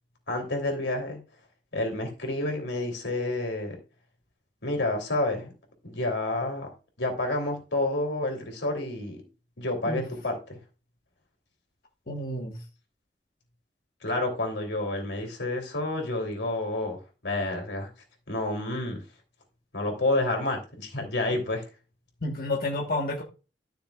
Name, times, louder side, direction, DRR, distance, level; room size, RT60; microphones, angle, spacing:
voice 1, 0.3-1.2 1.7-3.8 4.6-5.5 5.8-6.7 7.0-9.2 9.6-10.6 14.0-17.0 17.2-17.9 18.3-19.0 19.7-21.6, left 2 dB, 90° left, 2 dB, 3.2 m, -29 dB
voice 2, 12.1-12.6 22.2-23.2, left 2 dB, 55° left, -1 dB, 1.4 m, -30 dB
13.0 x 6.6 x 2.4 m, 0.33 s
head